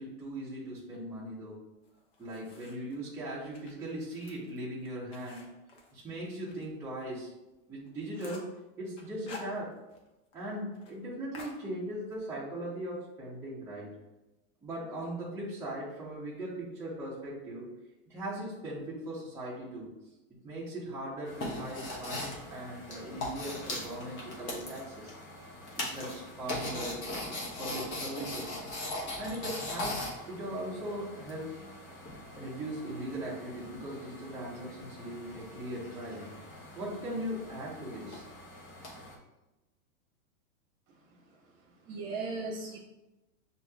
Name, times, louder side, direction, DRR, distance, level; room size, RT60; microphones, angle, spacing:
voice 1, 0.0-1.6 2.2-5.5 5.9-7.3 7.7-9.7 10.3-13.9 14.6-17.7 18.1-19.9 20.4-25.1 25.8-27.1 27.6-28.6 29.2-31.6 32.4-36.3 36.7-38.3, right 1 dB, 5° right, -9 dB, 1.0 m, -39 dB
sound 1, 1.8-3.0 3.4-6.7 7.0-7.1 7.5-7.6 7.9-8.6 9.0-10.1 10.3-10.4 10.7-10.9 11.3-12.2, left 4 dB, 55° left, 1.1 m, -50 dB
sound 2, 21.3-39.1, left 1 dB, 25° left, 1.0 m, -41 dB
voice 2, 41.6-42.8, right 3 dB, 35° right, -2 dB, 1.3 m, -38 dB
5.9 x 2.9 x 2.3 m, 0.99 s
hypercardioid pair, 140°, 43 cm